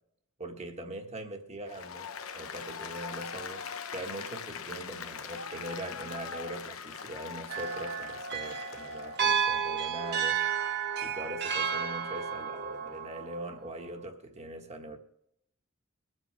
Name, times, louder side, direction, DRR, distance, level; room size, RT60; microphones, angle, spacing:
voice 1, 0.4-2.1 2.3-10.4 10.8-15.0, right 1 dB, 30° right, 1.5 m, -41 dB
Applause, 1.7-9.2, left 6 dB, 80° left, 0.9 m, -41 dB
sound 1, 7.5-13.8, right 7 dB, 55° right, 1.1 m, -32 dB
22.5 x 7.7 x 3.4 m
head